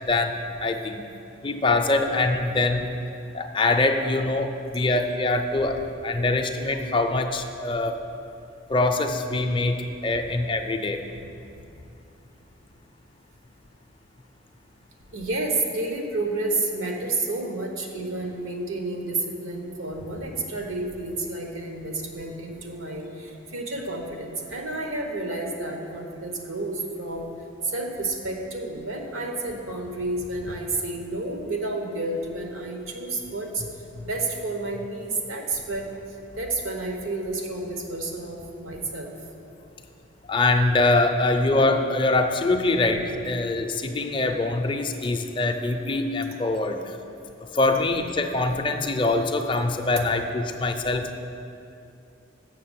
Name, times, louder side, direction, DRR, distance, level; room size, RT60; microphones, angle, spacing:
voice 1, 0.1-1.0 1.4-3.0 3.3-8.0 8.7-11.0 33.9-34.1 40.3-47.0 47.5-51.2, left 2 dB, 25° left, 5 dB, 0.4 m, -24 dB
voice 2, 15.1-27.3 27.6-33.6 34.0-35.8 36.4-39.2, right 2 dB, 85° right, 2 dB, 1.1 m, -30 dB
6.6 x 6.3 x 7.3 m, 2.6 s
head